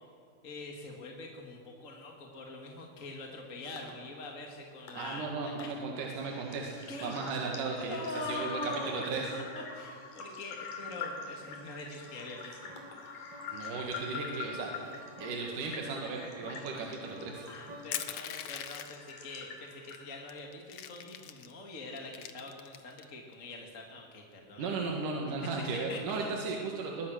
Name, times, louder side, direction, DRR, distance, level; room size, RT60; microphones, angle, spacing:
voice 1, 0.4-5.7 6.9-7.2 7.9-9.1 9.3-9.4 9.7-12.7 17.5-24.7 25.9-26.3, left 2 dB, 30° left, 1 dB, 1.9 m, -43 dB
sound 1, 3.8-3.9 4.9-5.0 5.6-5.7 6.1-20.3, left 5 dB, 80° left, 4.4 m, -46 dB
voice 2, 5.0-8.6 8.9-9.2 13.5-14.9 15.2-17.4 24.6-27.1, right 4 dB, 75° right, 0 dB, 3.5 m, -36 dB
sound 2, 10.9-18.3, equal, 35° right, 2.9 m, -52 dB
Crushing, 17.9-19.1 19.9-20.0 20.3-21.5 22.0-23.0, left 10 dB, 65° left, 1.9 m, -40 dB
21.5 x 21.0 x 6.4 m, 2.3 s
omnidirectional pair, 3.7 m